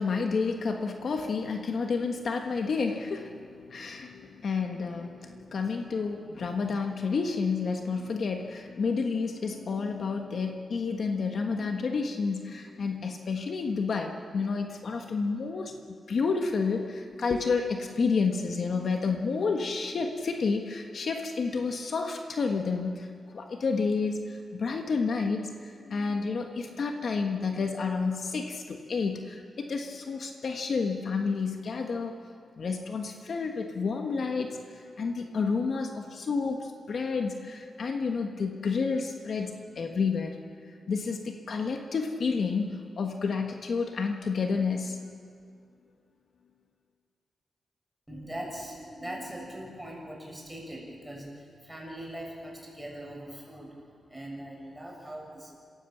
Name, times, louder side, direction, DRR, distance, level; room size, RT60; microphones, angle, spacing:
voice 1, 0.0-15.7 16.1-32.1 32.6-40.4 40.9-45.1, left 4 dB, 60° left, 3 dB, 1.4 m, -30 dB
voice 2, 5.0-5.6 6.6-6.7 48.1-55.5, right 1 dB, 5° right, -2 dB, 7.0 m, -41 dB
27.5 x 16.0 x 7.3 m, 2.2 s
wide cardioid pair, 120°, 0 cm